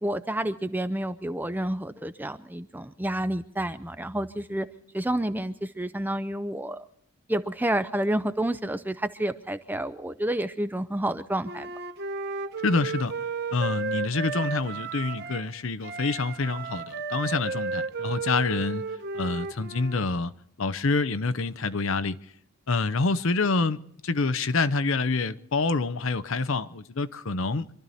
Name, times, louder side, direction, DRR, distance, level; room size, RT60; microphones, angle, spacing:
voice 1, 0.0-4.7 4.9-6.8 7.3-11.7, right 1 dB, 10° right, 0.5 m, -29 dB
Wind instrument woodwind instrument, 11.4-15.5 15.8-20.1, right 4 dB, 45° right, 1.1 m, -33 dB
voice 2, 12.6-13.1 13.5-18.8 19.1-20.3 20.6-22.2 22.7-27.7, left 3 dB, 65° left, 0.7 m, -27 dB
26.0 x 12.5 x 4.2 m
head